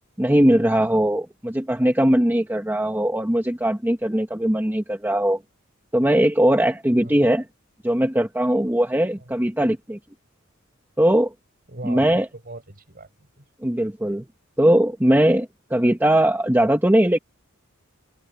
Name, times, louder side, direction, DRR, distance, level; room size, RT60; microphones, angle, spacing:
voice 1, 0.2-5.4 5.9-7.4 7.8-10.0 11.0-11.3 11.8-12.3 13.6-14.2 14.6-17.2, right 1 dB, 10° right, 1.0 m, -20 dB
voice 2, 11.7-13.4, right 2 dB, 45° right, 5.5 m, -39 dB
head